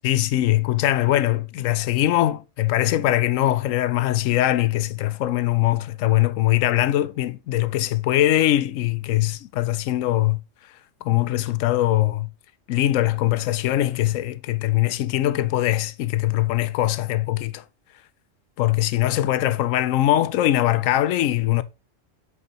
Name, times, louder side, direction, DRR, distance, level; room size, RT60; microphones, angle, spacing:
voice 1, 0.0-10.4 11.0-12.3 12.7-17.6 18.6-21.6, left 14 dB, 85° left, 1.0 m, -22 dB
8.2 x 4.8 x 2.9 m
omnidirectional pair, 1.3 m